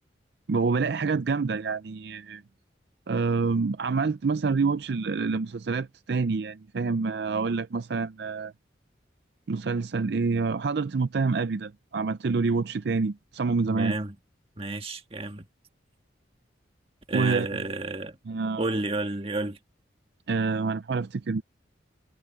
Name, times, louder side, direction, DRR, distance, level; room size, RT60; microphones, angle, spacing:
voice 1, 0.5-2.4 3.1-8.5 9.5-14.0 17.1-17.5 18.3-18.6 20.3-21.4, right 4 dB, 60° right, 0.5 m, -27 dB
voice 2, 13.7-14.1 14.6-15.4 17.1-18.2 18.6-19.6, right 2 dB, 30° right, 1.6 m, -31 dB
head